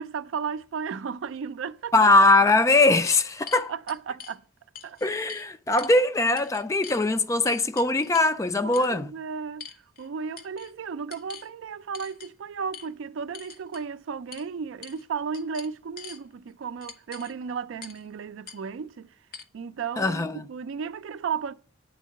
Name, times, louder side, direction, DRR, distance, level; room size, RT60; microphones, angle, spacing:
voice 1, 0.0-2.1 3.5-4.5 4.8-5.0 8.6-19.1 19.5-21.5, right 6 dB, 80° right, 0.4 m, -34 dB
sound 1, 1.8-1.9 2.5-4.4 4.8-5.5 5.8-6.0 6.4-7.0 7.5-8.4 8.7-8.9 9.6-10.1 10.4-10.7 11.1-11.5 11.9-12.3 12.7-12.9 13.3-13.9 14.3-14.5 14.8-15.1 15.3-16.2 16.8-17.3 17.8-18.0 18.5-18.6 19.3-19.4, left 6 dB, 45° left, 0.7 m, -44 dB
voice 2, 1.9-3.7 5.0-9.1 20.0-20.4, left 2 dB, 15° left, 0.3 m, -21 dB
9.3 x 3.7 x 6.3 m
head